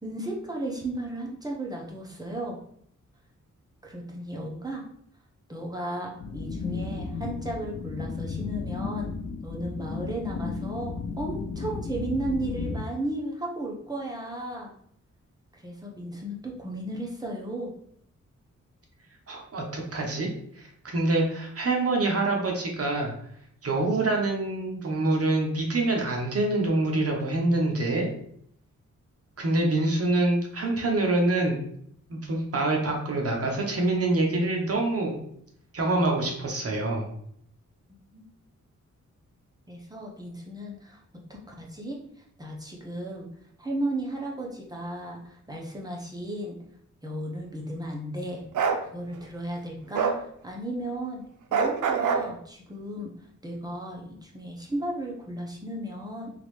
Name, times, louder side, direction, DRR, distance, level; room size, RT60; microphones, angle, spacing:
voice 1, 0.0-2.6 3.8-4.8 5.5-9.1 9.4-14.7 15.5-17.7 38.1-38.2 39.7-41.0 41.3-42.0 42.4-43.3 43.6-46.6 47.0-48.4 48.9-50.2 50.4-51.2 51.5-53.1 53.4-56.3, right 1 dB, 15° right, -2 dB, 1.1 m, -34 dB
sound 1, 6.2-12.8, left 4 dB, 55° left, 0.5 m, -34 dB
voice 2, 19.3-20.3 20.6-23.1 23.6-28.1 29.4-31.6 32.1-35.2 35.7-37.1, right 2 dB, 50° right, 0 dB, 1.1 m, -26 dB
Bark, 48.5-48.8 49.9-50.2 51.5-52.3, right 6 dB, 80° right, 0.6 m, -24 dB
3.9 x 3.0 x 3.2 m, 0.68 s
wide cardioid pair, 95°, 30 cm